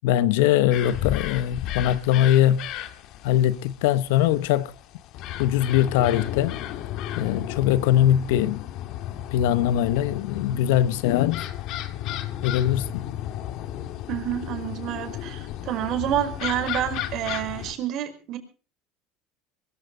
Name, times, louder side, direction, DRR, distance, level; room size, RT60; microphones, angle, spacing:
voice 1, 0.0-2.7 3.2-4.7 5.4-6.6 7.2-8.6 9.3-11.5 12.4-13.1, left 12 dB, 80° left, 1.0 m, -21 dB
sound 1, 0.7-17.7, left 12 dB, 65° left, 2.0 m, -33 dB
voice 2, 14.1-18.4, right 11 dB, 60° right, 4.9 m, -28 dB
22.5 x 14.5 x 3.9 m
supercardioid pair, 95°, 0 cm